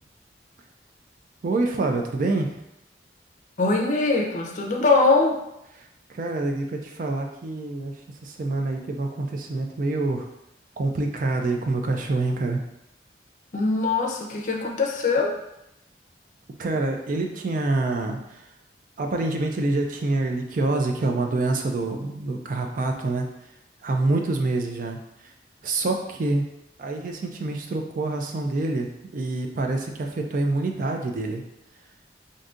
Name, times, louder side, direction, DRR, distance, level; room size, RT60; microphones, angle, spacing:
voice 1, 1.4-2.6 5.8-8.0 8.2-10.3 10.8-12.6 16.6-18.5 19.0-23.3 23.8-25.0 25.2-25.3 25.6-26.4 26.8-31.4, right 2 dB, 45° right, 3 dB, 0.3 m, -26 dB
voice 2, 3.6-5.3 13.5-15.3, left 3 dB, 45° left, 0 dB, 0.5 m, -22 dB
3.7 x 2.6 x 2.4 m, 0.86 s
head